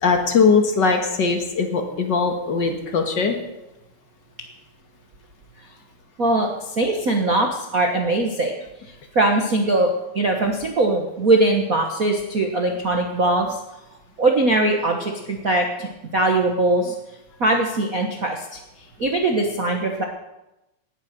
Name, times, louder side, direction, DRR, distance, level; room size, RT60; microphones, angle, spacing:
voice 1, 0.0-3.4, left 5 dB, 40° left, 4 dB, 1.9 m, -20 dB
voice 2, 6.2-8.5 8.8-13.6 14.2-16.9 17.4-18.6 19.0-20.0, right 2 dB, 60° right, 2 dB, 0.9 m, -21 dB
19.0 x 8.8 x 6.6 m, 0.94 s
omnidirectional pair, 3.5 m